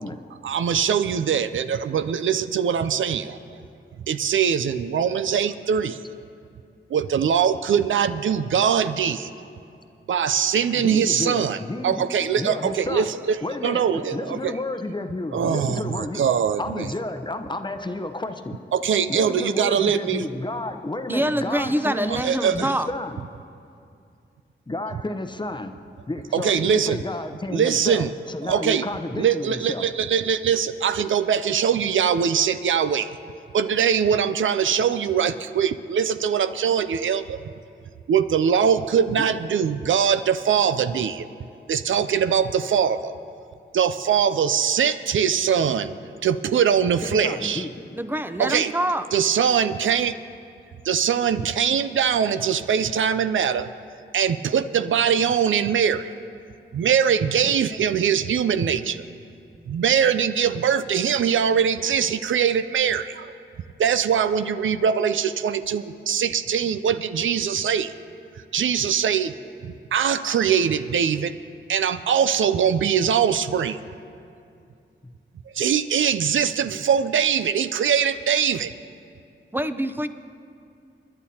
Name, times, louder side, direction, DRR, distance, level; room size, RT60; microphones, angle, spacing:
voice 1, 0.4-3.6 4.1-6.0 6.9-9.3 10.1-11.6 11.8-13.4 13.6-14.5 15.3-16.9 18.7-20.3 22.1-22.7 26.3-27.0 27.5-28.1 28.4-28.9 29.2-33.2 33.5-37.4 38.1-41.3 41.7-43.1 43.7-45.9 46.2-47.6 48.4-48.7 49.1-50.2 50.8-53.7 54.1-56.1 56.7-59.0 59.7-63.3 63.8-67.9 68.5-69.3 69.6-71.3 71.7-73.8 75.5-78.7, right 7 dB, 75° right, 12 dB, 0.4 m, -22 dB
voice 2, 10.7-12.1 12.4-13.1 13.4-16.2 16.6-18.6 19.1-23.2 24.7-25.7 26.1-29.9 39.2-39.3 47.0-47.7 57.4-57.6 75.0-75.1, left 2 dB, 25° left, 8 dB, 0.7 m, -31 dB
voice 3, 21.1-22.9 48.0-49.0 79.5-80.1, right 1 dB, 10° right, 10 dB, 0.6 m, -25 dB
26.0 x 11.0 x 2.8 m, 2.5 s
cardioid pair, 55°, 20 cm